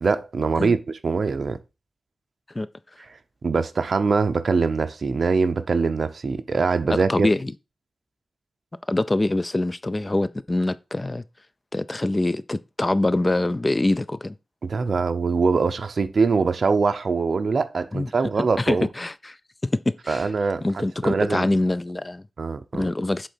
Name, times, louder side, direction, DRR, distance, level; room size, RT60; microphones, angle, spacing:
voice 1, 0.0-1.6 3.4-7.3 14.6-18.9 20.1-21.4 22.4-22.9, right 4 dB, 65° right, 0.6 m, -23 dB
voice 2, 6.9-7.5 8.9-11.2 11.7-14.3 17.9-18.1 18.4-19.4 19.7-20.3 20.6-22.2 22.7-23.3, left 2 dB, 25° left, 0.5 m, -24 dB
7.8 x 3.7 x 4.4 m
wide cardioid pair, 80°, 0 cm